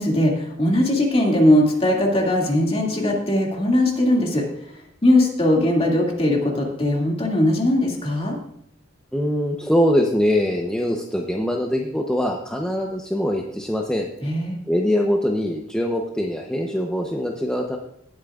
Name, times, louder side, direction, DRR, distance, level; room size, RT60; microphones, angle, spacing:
voice 1, 0.0-4.4 5.0-8.4 14.2-14.6, left 1 dB, 30° left, -1 dB, 2.2 m, -19 dB
voice 2, 9.1-14.1 14.7-17.8, equal, 5° left, 0 dB, 0.7 m, -23 dB
17.5 x 8.8 x 2.4 m, 0.78 s
head